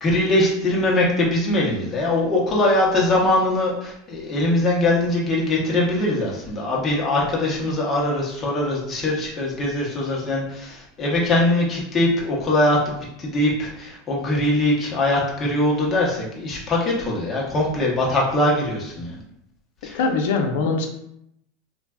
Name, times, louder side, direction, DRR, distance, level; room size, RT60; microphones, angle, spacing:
voice 1, 0.0-19.2 19.8-20.0, left 1 dB, 20° left, -3 dB, 0.8 m, -22 dB
voice 2, 19.9-20.9, left 4 dB, 70° left, 2 dB, 0.5 m, -22 dB
3.2 x 2.4 x 2.2 m, 0.76 s
supercardioid pair, 150°, 0 cm